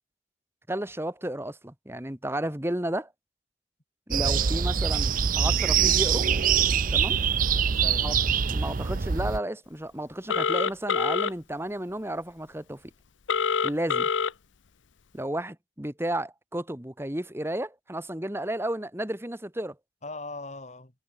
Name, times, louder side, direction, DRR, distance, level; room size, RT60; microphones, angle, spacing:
voice 1, 0.7-3.1 4.1-6.3 6.9-7.2 8.0-8.2 8.5-12.8 13.6-14.1 15.1-19.8, right 1 dB, 15° right, 1.8 m, -32 dB
sound 1, 4.1-9.4, right 7 dB, 45° right, 0.6 m, -24 dB
voice 2, 4.2-4.6 7.5-8.4 20.0-20.9, left 2 dB, 40° left, 3.2 m, -40 dB
Telephone, 10.3-11.3 13.3-14.3, left 6 dB, 85° left, 0.8 m, -25 dB
head